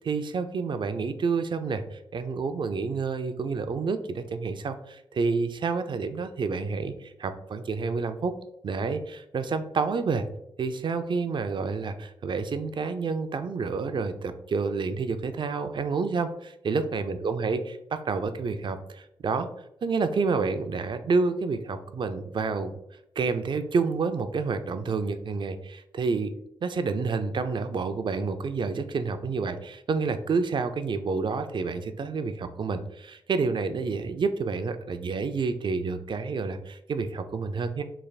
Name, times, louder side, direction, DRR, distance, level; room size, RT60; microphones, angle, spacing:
voice 1, 0.0-8.3 8.6-10.2 10.6-17.6 18.1-19.5 19.8-22.7 23.2-26.3 26.6-37.8, right 4 dB, 55° right, 9 dB, 0.4 m, -29 dB
3.3 x 2.4 x 4.0 m, 0.80 s
cardioid pair, 65°, 10 cm